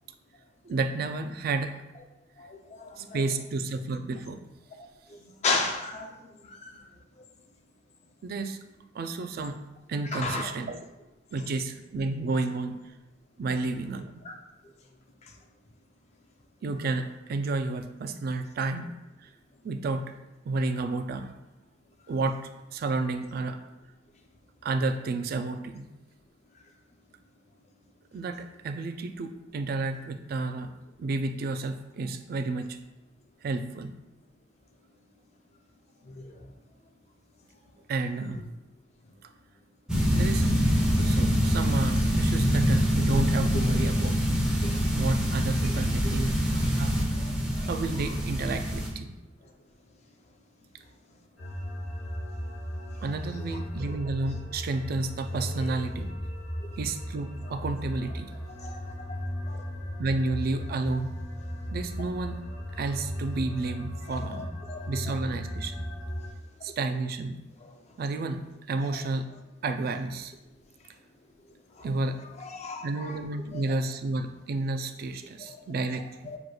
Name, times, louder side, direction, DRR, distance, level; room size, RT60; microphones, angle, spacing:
voice 1, 0.6-1.7 3.0-4.4 8.2-8.6 8.9-9.6 9.9-10.8 11.3-12.8 13.4-14.2 16.6-18.9 19.2-19.3 19.6-20.0 20.5-21.3 22.1-22.4 22.7-23.6 24.6-25.9 28.1-30.7 31.0-32.8 33.4-33.9 37.9-38.4 40.1-40.5 41.0-44.1 45.0-46.3 46.8-47.0 47.6-49.1 53.0-56.1 56.8-58.3 60.0-61.2 61.7-62.4 62.8-64.5 64.9-65.9 66.6-67.4 68.0-69.3 69.6-70.3 71.8-72.2 72.8-76.3, right 3 dB, 55° right, 8 dB, 0.3 m, -31 dB
voice 2, 5.4-6.1 6.6-6.7 10.1-10.5 14.3-14.4 58.6-58.8 59.1-59.2 59.5-59.6 64.3-64.8 72.5-72.9 73.5-73.6 75.4-75.6 76.3-76.4, left 3 dB, 35° left, 3 dB, 0.4 m, -31 dB
sound 1, 39.9-48.9, equal, 5° right, 0.7 m, -25 dB
sound 2, 51.4-66.3, equal, 85° left, 0.9 m, -36 dB
6.4 x 3.0 x 2.3 m, 0.98 s
head